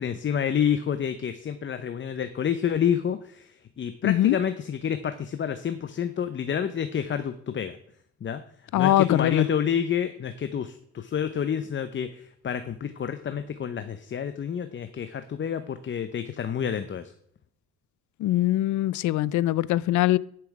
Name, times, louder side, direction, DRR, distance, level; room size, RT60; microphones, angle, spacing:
voice 1, 0.0-7.8 8.2-8.4 8.7-17.1, left 8 dB, 40° left, 0.7 m, -29 dB
voice 2, 4.0-4.4 8.7-9.5 18.2-20.2, left 15 dB, 75° left, 0.5 m, -22 dB
10.5 x 6.0 x 4.7 m
cardioid pair, 90°, 30 cm